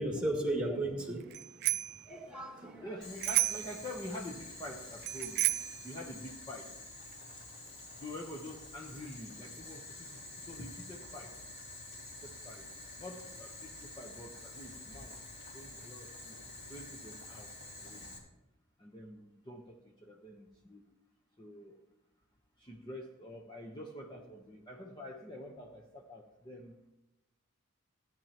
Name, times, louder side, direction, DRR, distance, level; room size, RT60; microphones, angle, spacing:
voice 1, 0.0-2.9, right 1 dB, 5° right, 0 dB, 2.1 m, -36 dB
Bicycle bell, 1.3-2.0 3.2-3.8 5.0-5.8, right 16 dB, 50° right, 0.4 m, -31 dB
voice 2, 2.8-5.4 5.8-6.7 8.0-11.3 12.2-12.6 13.0-15.1 15.5-16.4 16.7-17.5 17.8-18.2 18.8-20.8 21.4-21.8 22.6-26.7, left 1 dB, 20° left, -1 dB, 0.9 m, -46 dB
Boiling, 3.0-18.2, left 2 dB, 50° left, 4.2 m, -48 dB
17.0 x 10.5 x 3.0 m, 0.93 s
head